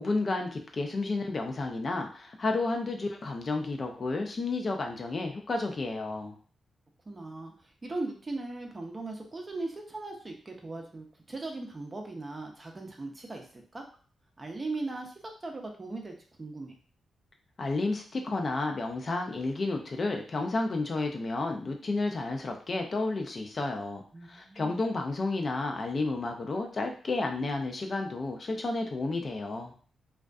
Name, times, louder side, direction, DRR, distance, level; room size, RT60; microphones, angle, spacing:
voice 1, 0.0-6.4 17.6-29.7, left 3 dB, 40° left, 3 dB, 0.4 m, -31 dB
voice 2, 7.1-7.5 7.8-13.8 14.4-15.1 15.4-16.8 24.1-24.8, right 2 dB, 30° right, 2 dB, 0.5 m, -38 dB
2.4 x 2.3 x 2.2 m, 0.41 s
cardioid pair, 95°, 0 cm